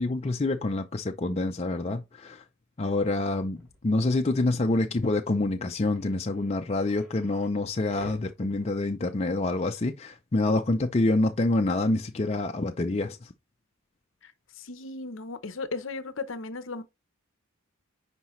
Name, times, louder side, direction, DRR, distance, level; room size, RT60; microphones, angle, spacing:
voice 1, 0.0-2.4 2.8-13.3, left 2 dB, 30° left, 0.4 m, -27 dB
sound 1, 3.6-3.8 5.1-5.2 5.5-5.6 5.9-7.6 7.9-9.5 9.8-9.9 10.7-10.8 12.8-12.9, left 1 dB, ahead, 4.0 m, -49 dB
voice 2, 14.6-16.8, left 3 dB, 60° left, 0.8 m, -36 dB
9.7 x 4.8 x 3.1 m
head